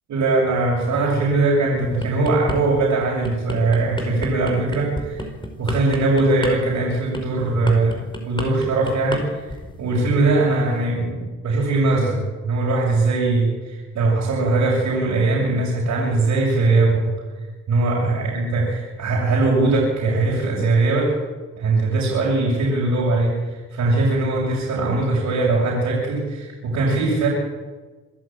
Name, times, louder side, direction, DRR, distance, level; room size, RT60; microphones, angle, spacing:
voice 1, 0.1-5.3 5.6-9.5 9.8-12.2 12.4-17.0 17.7-21.1 21.6-27.3, right 2 dB, 70° right, -4 dB, 6.9 m, -20 dB
sound 1, 1.8-2.6 3.0-9.2 9.5-9.8, left 1 dB, 15° left, 4.7 m, -30 dB
26.0 x 11.5 x 9.1 m, 1.3 s
cardioid pair, 90°, 30 cm